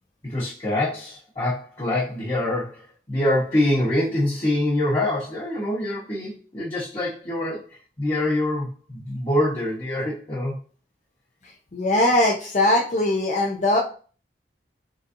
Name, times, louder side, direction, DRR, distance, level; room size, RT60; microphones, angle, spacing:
voice 1, 0.2-7.6 8.0-10.5, left 1 dB, 25° left, -9 dB, 1.2 m, -25 dB
voice 2, 11.7-13.8, left 1 dB, 40° left, 0 dB, 0.6 m, -20 dB
4.0 x 3.9 x 2.6 m, 0.39 s
head